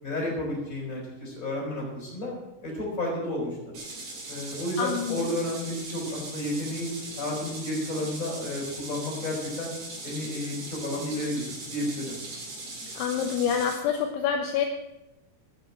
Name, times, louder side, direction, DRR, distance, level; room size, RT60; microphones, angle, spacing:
voice 1, 0.0-2.3 2.6-3.8 4.3-6.9 7.2-9.7 10.0-12.2, left 1 dB, 15° left, -2 dB, 5.1 m, -32 dB
sound 1, 3.7-13.8, right 2 dB, 40° right, 4.5 m, -39 dB
voice 2, 4.8-5.3 12.9-14.7, left 7 dB, 75° left, 3 dB, 3.1 m, -27 dB
10.0 x 8.7 x 8.8 m, 0.95 s
omnidirectional pair, 5.8 m